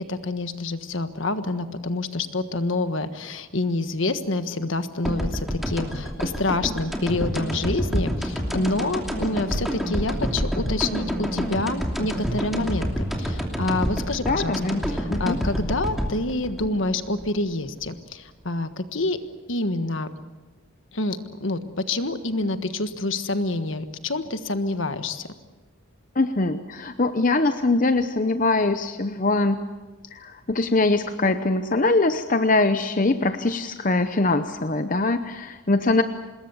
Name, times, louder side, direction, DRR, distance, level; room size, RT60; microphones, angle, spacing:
voice 1, 0.0-12.9 13.2-14.6 14.9-19.2 19.5-20.1 20.9-25.3, left 2 dB, 65° left, 10 dB, 1.5 m, -27 dB
sound 1, 5.0-17.9, equal, ahead, 2.7 m, -28 dB
voice 2, 14.3-14.8 15.1-15.4 26.2-29.6 30.1-36.0, left 2 dB, 40° left, 9 dB, 0.8 m, -22 dB
26.0 x 20.5 x 7.2 m, 1.3 s
head